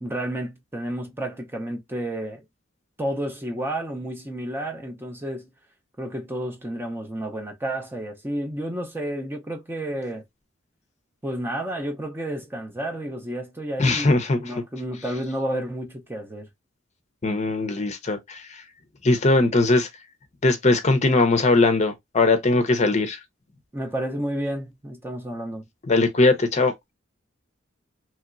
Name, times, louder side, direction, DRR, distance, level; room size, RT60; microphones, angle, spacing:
voice 1, 0.0-2.4 3.0-5.5 6.0-10.2 11.2-16.5 23.7-25.6, right 1 dB, 10° right, 0.6 m, -31 dB
voice 2, 13.8-14.4 17.2-18.4 19.0-19.9 20.4-23.2 25.9-26.7, left 2 dB, 35° left, 0.6 m, -20 dB
3.0 x 2.8 x 2.5 m
head